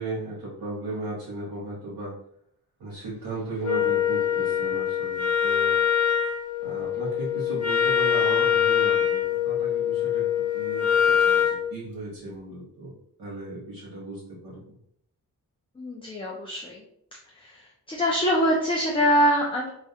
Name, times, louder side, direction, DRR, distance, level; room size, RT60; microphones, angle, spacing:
voice 1, 0.0-2.1 2.8-5.8 6.6-10.3 10.5-11.4 11.7-12.9 13.2-14.6, right 2 dB, 75° right, -6 dB, 0.9 m, -36 dB
Wind instrument woodwind instrument, 3.6-11.6, left 8 dB, 90° left, 0.7 m, -24 dB
voice 2, 15.8-16.8 17.3-19.7, equal, 15° left, -2 dB, 0.4 m, -24 dB
2.4 x 2.1 x 2.7 m, 0.70 s
wide cardioid pair, 85°, 36 cm